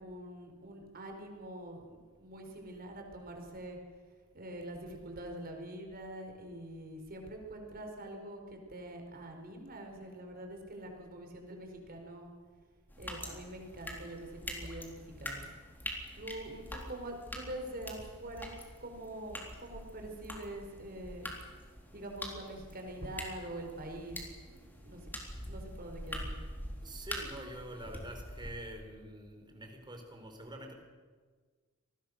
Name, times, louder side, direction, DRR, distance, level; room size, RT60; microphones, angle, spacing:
voice 1, 0.0-3.8 4.3-12.3 13.0-15.5 16.1-18.5 18.8-21.3 21.9-24.3 24.8-25.1 25.5-26.4, right 1 dB, 45° right, 3 dB, 4.8 m, -45 dB
sound 1, 12.9-28.5, equal, 10° left, 3.9 m, -45 dB
voice 2, 26.8-30.7, right 1 dB, 20° right, 4 dB, 4.2 m, -46 dB
27.5 x 20.5 x 6.7 m, 1.5 s
head